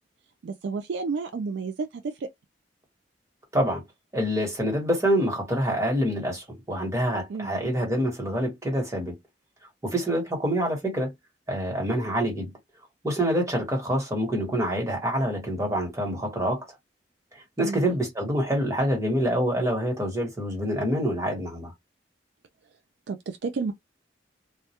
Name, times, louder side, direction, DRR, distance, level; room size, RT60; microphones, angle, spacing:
voice 1, 0.4-2.3 7.3-7.6 17.6-17.9 23.1-23.7, right 4 dB, 65° right, 0.4 m, -31 dB
voice 2, 4.1-9.1 9.8-11.1 11.5-12.5 13.0-16.6 17.6-21.7, equal, 15° right, 1.1 m, -26 dB
2.2 x 2.1 x 2.8 m
head